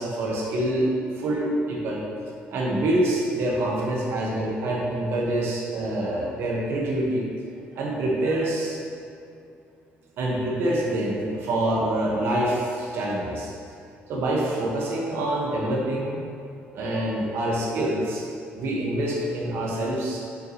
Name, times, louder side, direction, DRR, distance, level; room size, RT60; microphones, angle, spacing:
voice 1, 0.0-2.0 2.5-7.3 7.7-8.8 10.2-13.5 14.1-16.2 16.7-18.2 18.5-20.2, right 1 dB, 70° right, -3 dB, 1.7 m, -26 dB
8.4 x 6.0 x 3.3 m, 2.6 s
cardioid pair, 105°, 4 cm